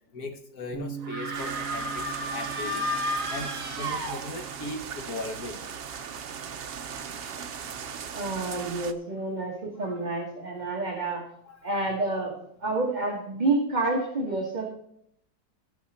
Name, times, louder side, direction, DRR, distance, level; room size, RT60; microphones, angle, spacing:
voice 1, 0.1-2.9 3.3-5.7 9.7-10.3 11.4-11.9 14.3-14.4, left 2 dB, 60° left, 5 dB, 1.5 m, -39 dB
Bass guitar, 0.7-7.0, right 6 dB, 15° left, 1.6 m, -43 dB
sound 1, 1.0-4.7, equal, 50° right, 1.8 m, -32 dB
sound 2, 1.3-8.9, right 7 dB, 65° right, 0.5 m, -39 dB
voice 2, 8.1-11.2 11.6-12.3 12.6-14.7, right 2 dB, 25° right, -1 dB, 1.6 m, -28 dB
18.0 x 6.1 x 4.3 m, 0.73 s
omnidirectional pair, 2.0 m